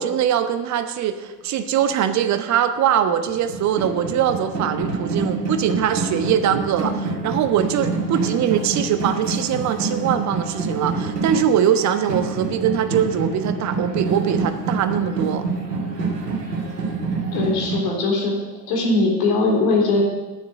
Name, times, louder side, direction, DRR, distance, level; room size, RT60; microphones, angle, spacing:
voice 1, 0.0-15.5, right 9 dB, 35° right, 9 dB, 1.1 m, -22 dB
sound 1, 3.3-17.8, right 3 dB, 75° right, 2.4 m, -27 dB
voice 2, 17.3-18.3 18.7-20.0, left 3 dB, 50° left, -2 dB, 3.9 m, -20 dB
9.2 x 7.3 x 8.5 m, 1.2 s
figure-of-eight pair, 70°, 49 cm